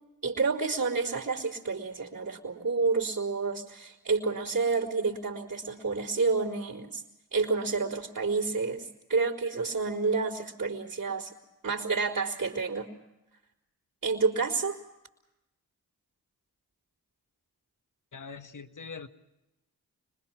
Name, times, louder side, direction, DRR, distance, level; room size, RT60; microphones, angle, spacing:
voice 1, 0.2-7.0 7.3-11.3 11.6-12.9 14.0-14.8, right 4 dB, 50° right, -8 dB, 4.1 m, -29 dB
voice 2, 18.1-19.1, left 5 dB, 50° left, 8 dB, 1.6 m, -42 dB
26.0 x 21.0 x 6.1 m, 0.94 s
supercardioid pair, 40°, 39 cm